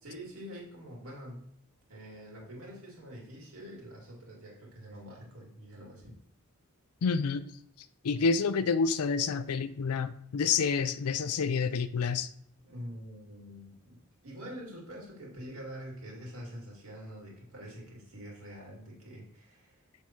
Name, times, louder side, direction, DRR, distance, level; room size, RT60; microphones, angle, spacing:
voice 1, 0.0-1.5 1.9-6.1 12.6-14.0 14.2-19.8, equal, 70° right, -4 dB, 2.5 m, -45 dB
voice 2, 7.0-7.5 8.0-12.3, left 5 dB, 85° left, 13 dB, 0.5 m, -28 dB
7.1 x 3.6 x 4.5 m, 0.71 s
head